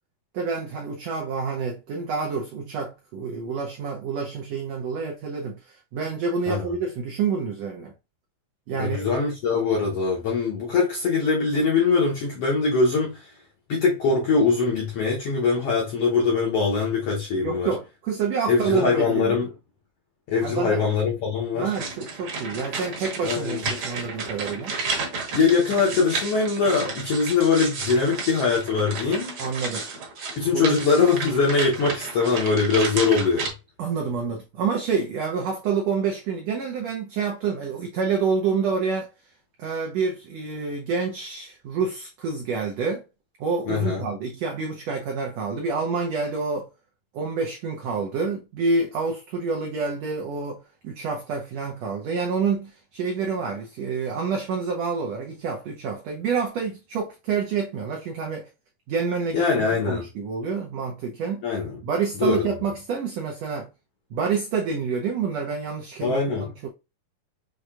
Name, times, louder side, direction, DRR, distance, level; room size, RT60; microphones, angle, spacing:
voice 1, 0.3-7.9 8.7-9.1 17.4-19.4 20.4-20.8 21.5-24.8 29.4-29.8 30.5-30.7 33.8-39.1 39.6-43.0 43.4-46.7 47.1-58.5 58.9-61.5 61.8-63.7 64.1-66.7, right 5 dB, 85° right, 1.5 m, -28 dB
voice 2, 8.8-13.3 13.7-17.7 18.5-19.5 20.3-21.7 23.2-23.7 25.3-29.4 30.4-33.5 43.7-44.1 59.3-60.0 61.4-61.8 62.2-62.4 66.0-66.5, left 4 dB, 70° left, 1.4 m, -22 dB
sound 1, 21.7-33.5, right 4 dB, 55° right, 1.5 m, -32 dB
6.3 x 3.2 x 2.4 m
omnidirectional pair, 3.9 m